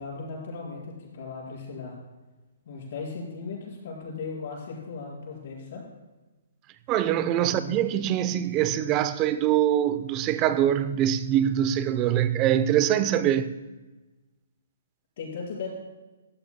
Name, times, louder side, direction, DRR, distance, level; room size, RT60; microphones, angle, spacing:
voice 1, 0.0-2.0 2.6-5.9 7.3-7.8 12.1-12.2 15.2-15.7, left 4 dB, 55° left, 4.7 m, -37 dB
voice 2, 6.9-13.5, right 11 dB, 25° right, 0.6 m, -24 dB
17.0 x 13.5 x 2.2 m
hypercardioid pair, 155°, 0 cm